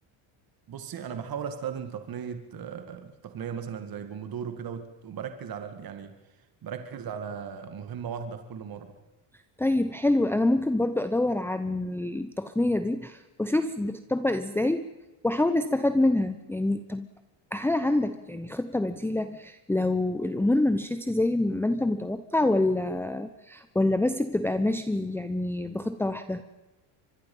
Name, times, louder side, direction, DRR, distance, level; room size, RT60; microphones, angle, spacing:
voice 1, 0.7-6.1 6.6-8.9, right 7 dB, 45° right, 8 dB, 2.2 m, -37 dB
voice 2, 9.6-14.9 15.2-17.1 17.5-26.4, left 2 dB, 5° left, 9 dB, 0.9 m, -26 dB
25.0 x 21.0 x 5.6 m, 1.1 s
cardioid pair, 110°, 49 cm